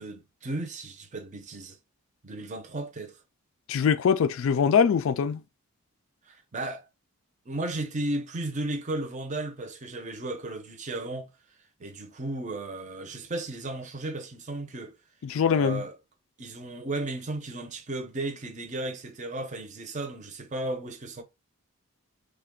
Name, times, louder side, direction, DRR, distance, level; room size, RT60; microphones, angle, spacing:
voice 1, 0.0-1.8 2.2-3.2 6.3-6.9 7.5-11.3 11.8-14.9 15.5-15.9 16.4-21.2, right 2 dB, 30° right, 0.6 m, -34 dB
voice 2, 3.7-5.4 15.2-15.8, left 6 dB, 60° left, 0.3 m, -23 dB
3.3 x 2.2 x 3.6 m
head